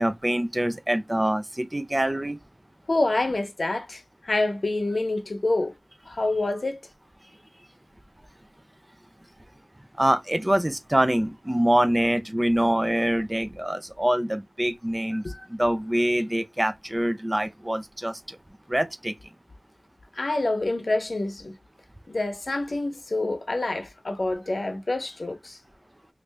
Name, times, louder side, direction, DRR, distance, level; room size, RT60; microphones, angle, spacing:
voice 1, 0.0-2.4 10.0-18.4 18.7-19.1, right 1 dB, 20° right, 0.4 m, -25 dB
voice 2, 2.9-5.7 6.1-6.8 15.2-15.4 20.1-21.5 22.1-25.6, left 2 dB, 75° left, 0.7 m, -27 dB
3.0 x 2.5 x 3.3 m
wide cardioid pair, 55°, 0 cm